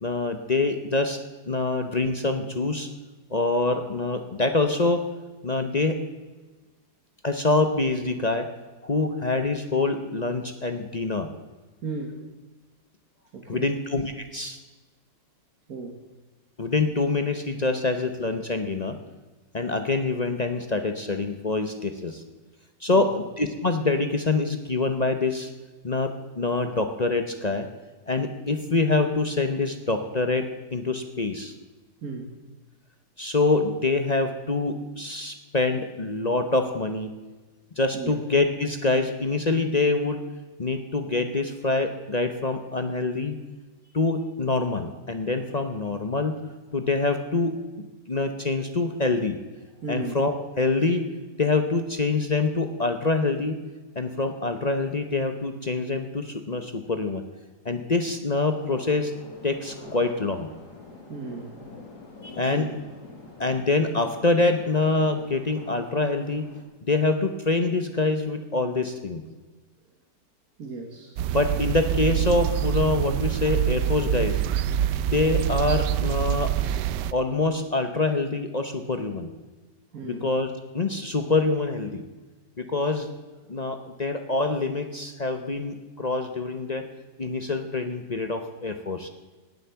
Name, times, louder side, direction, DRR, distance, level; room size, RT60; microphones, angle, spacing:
voice 1, 0.0-1.2 1.5-2.9 3.3-5.0 5.4-6.0 7.2-8.5 8.8-11.3 13.5-14.6 16.6-18.9 19.5-22.2 22.8-25.5 25.8-26.1 26.4-27.7 28.1-30.4 30.7-31.5 33.2-37.1 37.8-40.2 40.6-43.3 43.9-46.3 46.7-47.5 48.1-49.4 49.9-51.0 51.4-53.6 54.0-57.2 57.6-59.1 59.4-60.5 62.2-62.7 63.4-66.4 66.8-69.2 71.3-74.4 75.1-76.5 77.1-79.3 80.0-82.0 82.6-83.1 83.5-86.9 87.2-89.1, left 3 dB, 35° left, 7 dB, 0.7 m, -25 dB
voice 2, 11.8-12.3 13.3-13.7 15.7-16.0 22.9-23.1 32.0-32.3 37.9-38.2 49.8-50.2 61.1-61.5 62.4-62.7 70.6-71.2 79.9-80.3, right 3 dB, 60° right, 1 dB, 1.9 m, -35 dB
sound 1, 58.6-66.6, left 3 dB, 70° left, 3.1 m, -46 dB
sound 2, 71.2-77.1, right 11 dB, 85° right, 1.2 m, -25 dB
18.0 x 8.1 x 7.0 m, 1.3 s
omnidirectional pair, 1.8 m